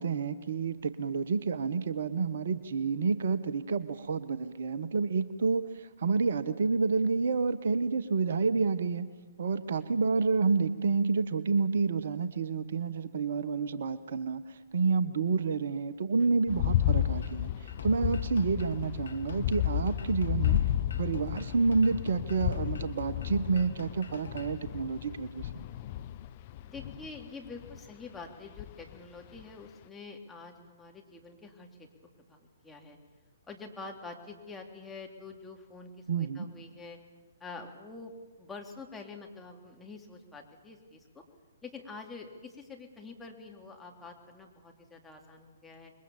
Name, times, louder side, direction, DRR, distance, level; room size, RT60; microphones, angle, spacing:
voice 1, 0.0-9.1 9.4-17.5 17.8-20.6 21.0-25.6 36.1-36.5, right 4 dB, 60° right, 12 dB, 1.2 m, -29 dB
sound 1, 16.5-27.8 28.6-29.0 29.4-29.5, left 12 dB, 40° left, 0.8 m, -32 dB
sound 2, 17.2-24.6, left 5 dB, 70° left, 2.0 m, -50 dB
voice 2, 26.6-31.9 32.3-33.0 33.5-37.0 37.4-38.1 38.4-41.2 41.6-45.9, left 4 dB, 10° left, 1 dB, 3.2 m, -46 dB
27.0 x 22.5 x 7.2 m, 1.3 s
figure-of-eight pair, 130°, 0 cm